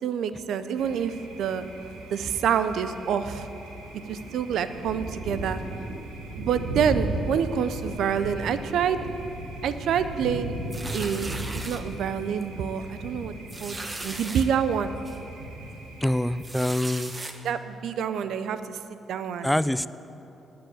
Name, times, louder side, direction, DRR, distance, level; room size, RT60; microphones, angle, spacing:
voice 1, 0.0-1.6 2.1-3.5 4.1-5.6 6.4-9.0 9.6-10.5 10.9-13.3 13.6-13.8 14.0-14.9 17.4-19.5, right 7 dB, 75° right, 11 dB, 0.6 m, -27 dB
Thunder, 0.8-16.4, right 1 dB, 90° right, 1.4 m, -37 dB
sound 1, 10.7-11.8 12.4-12.6 12.8-12.9 13.5-14.5 15.1-15.2 16.4-17.3, right 2 dB, 30° right, 1.2 m, -37 dB
voice 2, 16.0-17.1 19.4-19.9, left 1 dB, 5° left, 15 dB, 0.4 m, -25 dB
9.5 x 9.0 x 7.1 m, 3.0 s
supercardioid pair, 55°, 0 cm